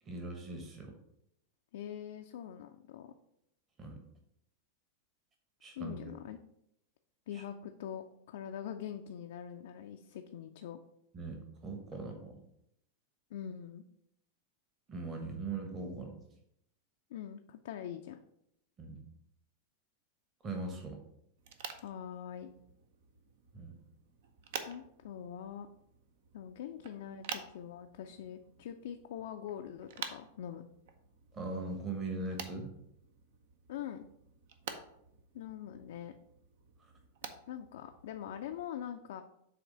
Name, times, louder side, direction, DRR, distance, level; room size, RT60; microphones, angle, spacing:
voice 1, 0.0-0.9 3.8-4.0 5.6-6.0 7.3-7.4 11.1-12.4 14.9-16.2 18.8-19.0 20.4-21.0 23.5-23.8 31.3-32.7, right 3 dB, 25° right, 3 dB, 1.2 m, -40 dB
voice 2, 1.7-3.1 5.8-6.4 7.3-10.8 13.3-13.8 17.1-18.2 21.8-22.5 24.6-25.7 26.3-30.6 33.7-34.0 35.3-36.1 37.5-39.2, left 9 dB, 55° left, 5 dB, 0.4 m, -43 dB
sound 1, 21.4-38.7, right 6 dB, 55° right, 0.6 m, -49 dB
7.6 x 3.2 x 5.2 m, 0.78 s
figure-of-eight pair, 90°, 0 cm